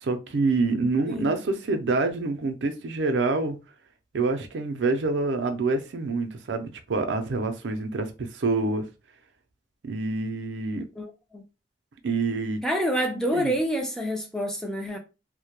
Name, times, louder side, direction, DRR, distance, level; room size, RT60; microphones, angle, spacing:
voice 1, 0.0-3.6 4.1-8.8 9.9-10.9 12.0-12.6 13.3-13.5, right 3 dB, 75° right, 0.5 m, -26 dB
voice 2, 11.0-11.4 12.6-15.0, equal, 5° left, 0.4 m, -28 dB
2.1 x 2.1 x 2.9 m
head